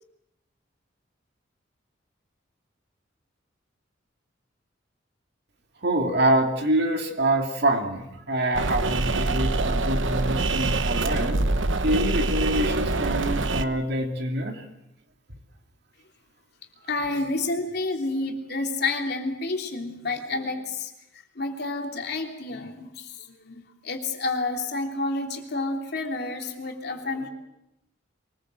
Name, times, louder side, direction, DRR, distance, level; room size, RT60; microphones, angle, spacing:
voice 1, 5.8-11.4 11.8-14.6, right 1 dB, 60° right, 3 dB, 2.8 m, -25 dB
sound 1, 8.5-13.6, right 2 dB, 80° right, 1.1 m, -25 dB
voice 2, 16.9-20.9 21.3-27.3, left 3 dB, 55° left, 2 dB, 3.2 m, -29 dB
24.0 x 20.0 x 7.8 m, 0.88 s
head